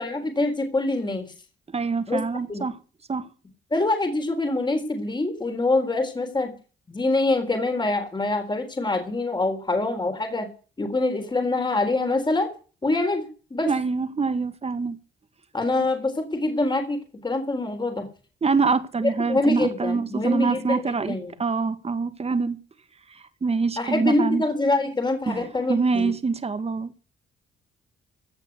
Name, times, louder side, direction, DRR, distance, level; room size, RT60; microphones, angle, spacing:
voice 1, 0.0-1.3 2.1-2.2 2.5-2.7 3.7-6.6 6.9-10.5 10.8-12.5 12.8-13.7 15.5-18.1 19.3-21.4 23.8-26.1, left 2 dB, 20° left, 3.8 m, -25 dB
voice 2, 1.7-2.8 3.1-3.3 13.7-15.0 18.4-22.6 23.1-24.4 25.3-27.1, right 4 dB, 30° right, 2.0 m, -25 dB
16.5 x 7.5 x 8.1 m
cardioid pair, 90°, 20 cm